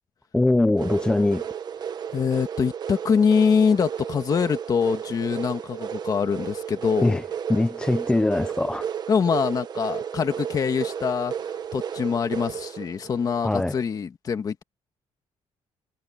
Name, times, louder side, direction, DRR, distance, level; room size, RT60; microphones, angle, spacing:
voice 1, 0.3-1.5 7.0-7.2 7.5-8.9 13.4-13.8, left 2 dB, 5° left, 0.5 m, -22 dB
sound 1, 0.8-13.9, right 8 dB, 40° right, 1.2 m, -33 dB
voice 2, 2.1-7.2 9.1-11.3 11.7-14.6, left 6 dB, 35° left, 1.8 m, -24 dB
cardioid pair, 170°, 11 cm